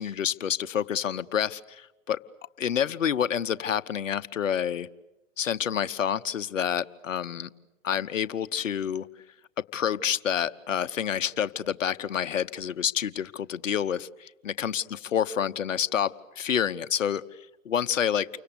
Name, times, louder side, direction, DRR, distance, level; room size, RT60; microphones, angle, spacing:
voice 1, 0.0-2.2 2.6-4.9 5.4-7.5 7.8-9.1 9.6-14.3 14.6-17.2 17.6-18.3, left 8 dB, 70° left, 12 dB, 1.2 m, -28 dB
30.0 x 25.0 x 6.9 m, 0.98 s
figure-of-eight pair, 120°, 40 cm